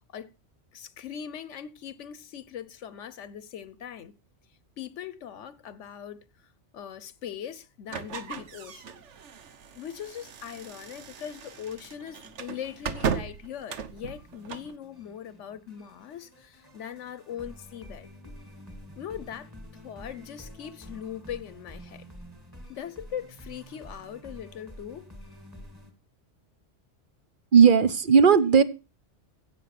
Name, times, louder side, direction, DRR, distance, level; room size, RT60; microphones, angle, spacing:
voice 1, 0.7-4.1 4.8-6.2 6.7-9.0 9.7-18.1 19.0-19.5 19.8-22.0 22.7-25.1, left 9 dB, 85° left, 1.1 m, -40 dB
sound 1, 7.9-14.7, right 7 dB, 75° right, 1.3 m, -36 dB
sound 2, 11.4-25.9, equal, 20° right, 2.5 m, -49 dB
voice 2, 27.5-28.6, right 6 dB, 50° right, 0.9 m, -16 dB
16.0 x 6.2 x 5.8 m
omnidirectional pair, 1.2 m